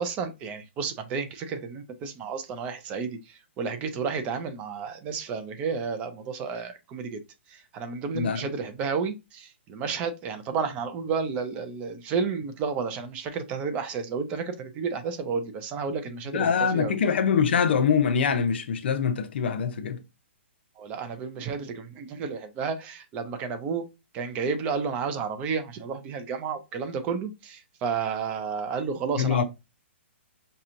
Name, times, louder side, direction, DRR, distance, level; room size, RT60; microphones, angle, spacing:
voice 1, 0.0-7.2 7.5-16.9 20.8-23.8 24.1-29.4, right 5 dB, 20° right, 0.5 m, -31 dB
voice 2, 8.1-8.5 16.3-20.0 29.2-29.4, left 6 dB, 60° left, 0.7 m, -24 dB
5.2 x 2.9 x 2.5 m
hypercardioid pair, 160°, 7 cm